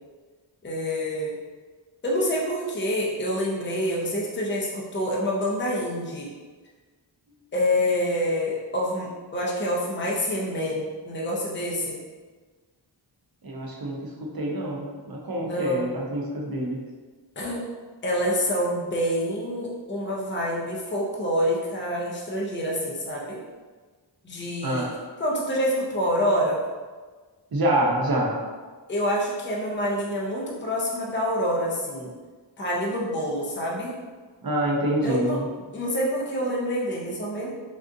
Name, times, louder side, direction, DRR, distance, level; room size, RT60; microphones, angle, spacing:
voice 1, 0.6-1.4 2.0-6.3 7.5-12.0 15.4-15.8 17.4-17.6 18.0-23.4 24.2-24.8 25.2-26.6 28.9-32.1 32.6-34.0 35.0-35.4 35.7-37.5, equal, 25° left, -4 dB, 0.6 m, -27 dB
voice 2, 13.4-14.1 14.3-16.8 24.6-24.9 27.5-28.4 34.4-35.5, right 1 dB, 50° right, -2 dB, 0.7 m, -26 dB
3.6 x 2.5 x 2.6 m, 1.4 s
wide cardioid pair, 80°, 47 cm